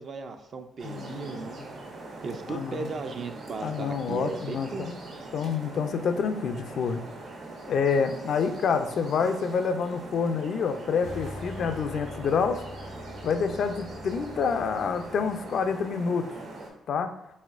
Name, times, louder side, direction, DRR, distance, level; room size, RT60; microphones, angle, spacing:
voice 1, 0.0-1.8 2.2-4.9, right 4 dB, 50° right, 7 dB, 0.4 m, -36 dB
voice 2, 0.8-1.4 2.5-2.9 3.6-5.0 5.3-7.0 7.7-12.6 13.2-16.2 16.9-17.1, left 6 dB, 65° left, 7 dB, 0.4 m, -27 dB
sound 1, 0.8-16.7, right 2 dB, 75° right, 1.4 m, -42 dB
sound 2, 11.0-15.9, left 2 dB, 90° left, 0.8 m, -44 dB
4.1 x 3.8 x 2.4 m, 0.85 s
cardioid pair, 90°, 0 cm